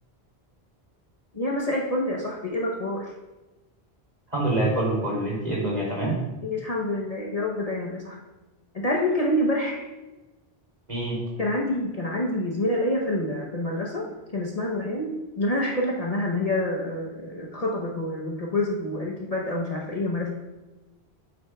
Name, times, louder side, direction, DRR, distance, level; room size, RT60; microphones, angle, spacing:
voice 1, 1.3-3.1 6.4-8.2 8.7-9.8 11.4-20.3, left 1 dB, 40° left, -2 dB, 0.9 m, -27 dB
voice 2, 4.3-6.2 10.9-11.2, right 1 dB, 40° right, -5 dB, 3.0 m, -25 dB
9.1 x 7.7 x 2.3 m, 1.1 s
omnidirectional pair, 1.1 m